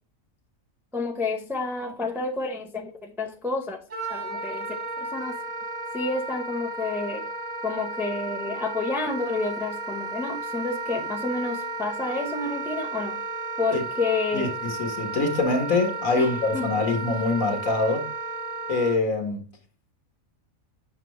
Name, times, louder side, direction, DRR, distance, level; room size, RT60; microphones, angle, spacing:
voice 1, 0.9-3.8 4.1-4.7 5.0-5.4 5.9-7.3 7.6-13.2 13.6-14.5 16.2-16.7, left 3 dB, ahead, 0.6 m, -29 dB
Wind instrument woodwind instrument, 3.9-19.0, right 3 dB, 80° right, 1.7 m, -33 dB
voice 2, 14.3-18.1 18.7-19.5, left 3 dB, 70° left, 1.8 m, -24 dB
7.5 x 5.8 x 3.1 m
omnidirectional pair, 1.4 m